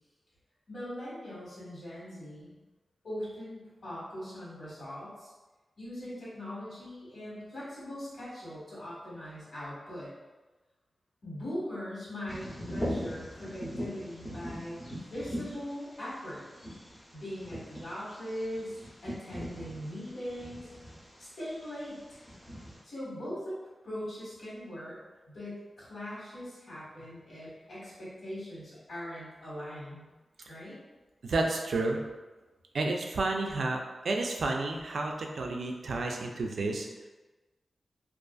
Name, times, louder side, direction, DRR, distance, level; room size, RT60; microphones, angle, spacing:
voice 1, 0.7-2.6 3.0-5.3 5.8-10.1 11.2-16.4 17.1-18.8 19.0-20.7 21.2-22.2 22.8-23.6 23.8-25.0 25.3-30.0 30.5-30.8, equal, 80° left, -9 dB, 1.4 m, -40 dB
Bird vocalization bird call bird song, 12.3-22.8, equal, 25° left, 0.6 m, -41 dB
voice 2, 31.2-32.0 32.7-33.8 34.0-36.9, right 2 dB, 80° right, 2 dB, 0.3 m, -30 dB
2.5 x 2.4 x 2.3 m, 1.2 s
wide cardioid pair, 120°, 0 cm